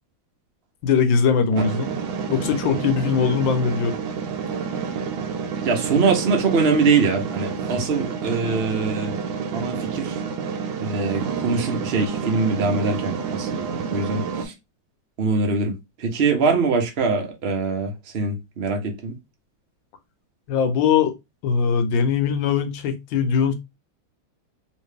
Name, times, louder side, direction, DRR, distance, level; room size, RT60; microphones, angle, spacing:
voice 1, 0.8-1.9 2.3-4.0 20.5-21.1 21.4-23.5, left 6 dB, 70° left, 1.4 m, -21 dB
sound 1, 1.5-14.4, right 6 dB, 80° right, 1.5 m, -29 dB
voice 2, 5.6-9.1 9.5-10.2 10.8-14.5 15.2-19.1, right 4 dB, 60° right, 0.6 m, -23 dB
3.2 x 2.9 x 3.3 m
omnidirectional pair, 2.3 m